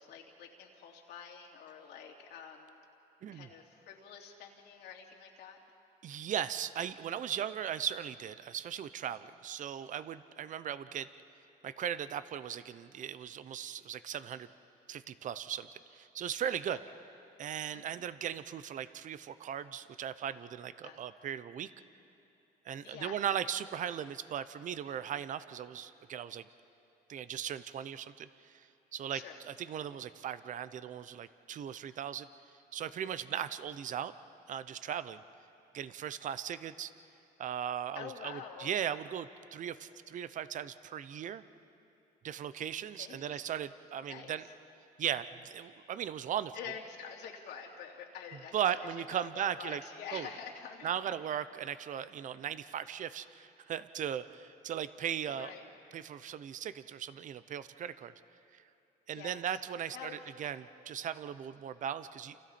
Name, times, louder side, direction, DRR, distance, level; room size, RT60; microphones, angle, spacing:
voice 1, 0.0-2.8 3.3-5.6 17.7-17.9 20.8-21.0 22.8-23.2 29.1-29.4 37.9-38.8 43.0-43.4 44.0-44.5 46.5-48.8 49.1-50.9 55.3-55.6 59.1-59.6 59.9-60.5, left 7 dB, 80° left, 1 dB, 2.8 m, -47 dB
voice 2, 6.0-11.1 11.6-14.5 14.9-16.8 17.4-21.7 22.6-26.4 27.1-28.7 28.9-32.3 32.7-34.1 34.5-35.2 35.7-36.9 37.4-41.4 42.2-44.4 45.0-46.5 48.5-49.8 50.1-50.3 50.8-55.5 55.9-58.1 58.5-58.6 59.1-62.4, right 9 dB, 50° right, 14 dB, 0.8 m, -38 dB
29.5 x 28.0 x 4.3 m, 2.9 s
cardioid pair, 110°, 17 cm